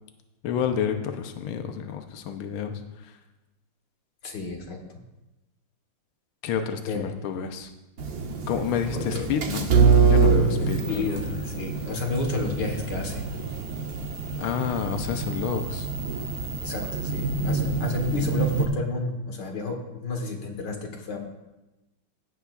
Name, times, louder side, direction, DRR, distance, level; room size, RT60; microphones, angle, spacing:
voice 1, 0.4-3.1 6.4-7.7 8.5-9.7 10.1-11.2 14.4-15.9, left 7 dB, 80° left, 6 dB, 1.6 m, -29 dB
voice 2, 4.2-5.0 6.9-7.1 8.9-9.3 10.6-13.2 16.6-21.2, left 3 dB, 55° left, 3 dB, 1.9 m, -32 dB
sound 1, 8.0-18.7, right 4 dB, 55° right, 1.2 m, -25 dB
17.0 x 8.4 x 2.4 m, 1.0 s
omnidirectional pair, 2.4 m